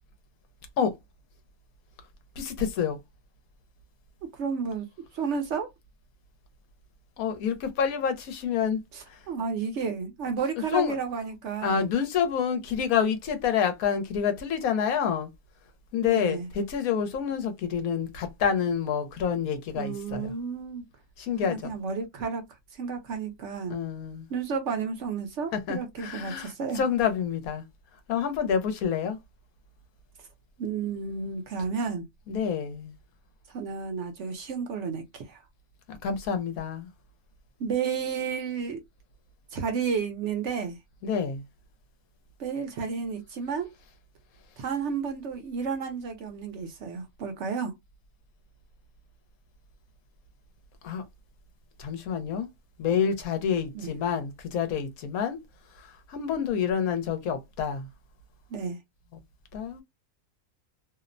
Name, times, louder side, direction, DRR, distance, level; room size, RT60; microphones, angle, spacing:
voice 1, 2.4-3.0 7.2-8.8 9.1-9.2 10.7-10.9 11.6-15.3 15.9-20.3 21.2-21.7 23.7-24.3 25.5-27.6 28.1-29.2 32.3-32.9 35.9-36.9 41.0-41.4 50.8-51.0 51.8-52.5 52.8-55.4 56.1-57.9 59.5-59.8, left 7 dB, 85° left, 1.2 m, -28 dB
voice 2, 4.2-4.9 5.1-5.7 8.9-11.9 16.0-16.5 19.7-20.8 21.4-22.4 22.7-23.8 24.3-26.8 30.6-32.1 33.5-35.4 37.6-38.8 39.5-40.8 42.4-43.7 44.6-47.7 53.7-53.9 58.5-58.8, right 5 dB, 60° right, 0.9 m, -32 dB
2.8 x 2.0 x 2.4 m
omnidirectional pair, 1.5 m